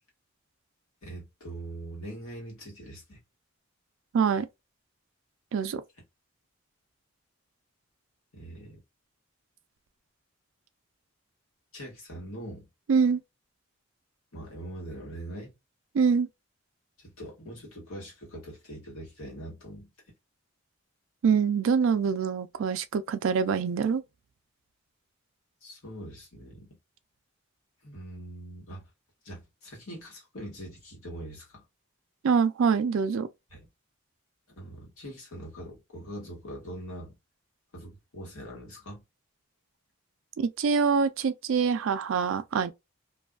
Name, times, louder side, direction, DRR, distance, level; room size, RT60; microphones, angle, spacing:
voice 1, 1.0-3.2 8.3-8.8 11.7-12.7 14.3-15.5 17.0-19.9 25.6-26.8 27.8-28.8 29.2-31.6 33.5-33.7 34.6-37.1 37.7-39.0, right 1 dB, 85° left, 1.4 m, -42 dB
voice 2, 4.1-4.5 5.5-5.8 12.9-13.2 15.9-16.3 21.2-24.0 32.2-33.3 40.4-42.7, right 6 dB, 70° right, 0.3 m, -25 dB
2.6 x 2.3 x 2.2 m
head